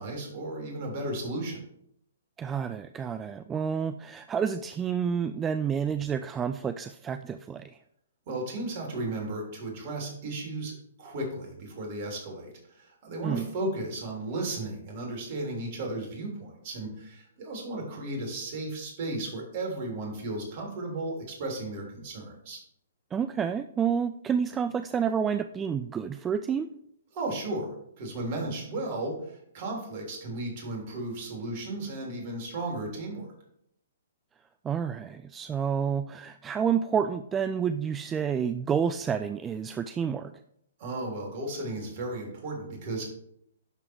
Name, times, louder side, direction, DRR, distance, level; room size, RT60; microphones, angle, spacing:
voice 1, 0.0-1.6 8.3-22.6 27.1-33.3 40.8-43.1, right 2 dB, 45° right, 0 dB, 3.2 m, -35 dB
voice 2, 2.4-7.8 13.2-13.5 23.1-26.7 34.6-40.3, right 7 dB, 15° right, 10 dB, 0.3 m, -29 dB
11.0 x 3.8 x 4.6 m, 0.74 s
hypercardioid pair, 125°, 0 cm